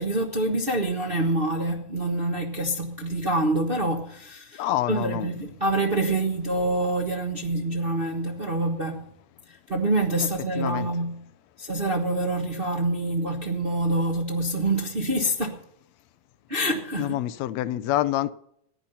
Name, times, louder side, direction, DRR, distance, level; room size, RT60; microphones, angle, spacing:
voice 1, 0.0-9.1 9.5-11.2 11.6-15.6 16.5-17.2, right 2 dB, 60° right, 0.5 m, -26 dB
voice 2, 4.6-5.3 10.6-10.9 17.0-18.3, left 14 dB, 75° left, 1.7 m, -26 dB
15.0 x 10.5 x 5.5 m
omnidirectional pair, 3.4 m